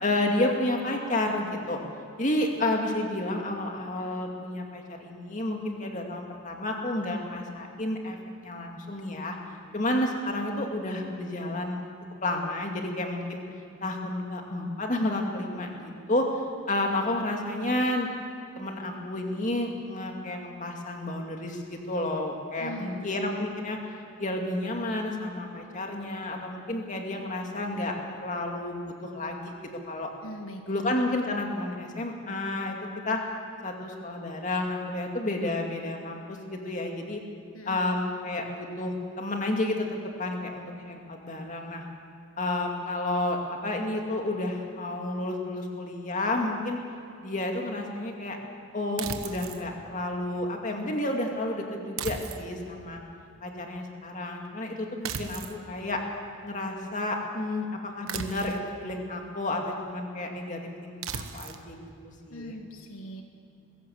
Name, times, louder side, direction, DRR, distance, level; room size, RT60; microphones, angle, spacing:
voice 1, 0.0-1.8 2.2-8.2 8.4-9.4 9.7-11.8 12.2-13.4 13.8-18.1 18.6-23.8 24.2-29.5 29.9-30.1 30.7-32.8 33.0-33.2 33.6-37.2 37.6-39.9 40.2-41.8 42.4-46.8 47.2-48.4 48.7-53.0 53.4-56.0 56.4-61.8 62.3-62.5, left 1 dB, 35° left, 2 dB, 2.4 m, -31 dB
voice 2, 22.6-23.1 30.2-30.9 37.5-37.8 62.3-63.2, left 1 dB, 75° left, 4 dB, 1.6 m, -40 dB
sound 1, 49.0-49.6 52.0-52.7 55.0-55.6 58.1-58.7 61.0-61.6, right 6 dB, 75° right, 1.2 m, -36 dB
21.5 x 16.5 x 7.8 m, 2.6 s
head